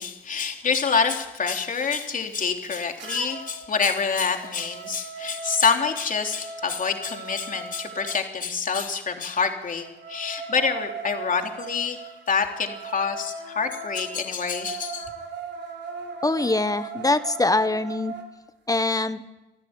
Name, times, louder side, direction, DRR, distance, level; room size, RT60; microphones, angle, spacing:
voice 1, 0.0-15.1, left 5 dB, 40° left, 4 dB, 3.6 m, -26 dB
sound 1, 3.0-3.6 4.0-8.2 9.7-18.3, right 4 dB, 65° right, 3.9 m, -38 dB
voice 2, 16.2-18.1 18.7-19.2, left 2 dB, 15° left, 12 dB, 1.4 m, -23 dB
26.5 x 14.0 x 9.8 m, 1.0 s
cardioid pair, 90°, 20 cm